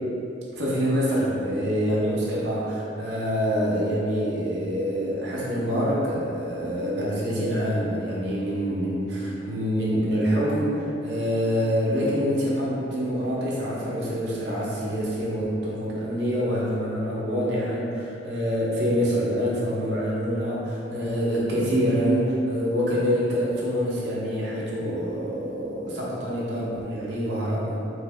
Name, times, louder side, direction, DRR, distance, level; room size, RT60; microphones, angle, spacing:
voice 1, 0.5-27.8, equal, 65° right, -6 dB, 0.7 m, -26 dB
3.1 x 2.1 x 3.5 m, 2.9 s
head